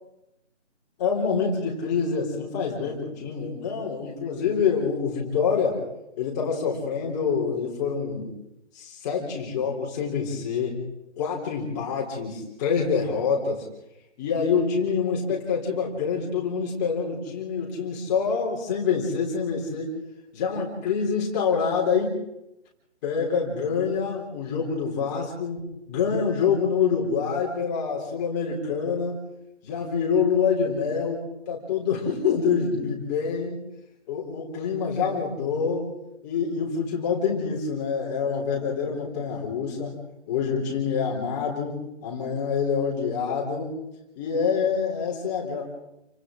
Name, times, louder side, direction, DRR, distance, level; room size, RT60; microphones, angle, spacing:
voice 1, 1.0-5.8 6.2-8.3 8.7-10.8 11.2-13.6 14.2-19.9 20.3-22.1 23.0-29.2 29.6-33.6 34.1-35.9 36.2-40.0 40.3-43.8 44.2-45.6, left 6 dB, 15° left, -2 dB, 3.5 m, -26 dB
29.0 x 24.5 x 3.8 m, 0.87 s
figure-of-eight pair, 165°, 37 cm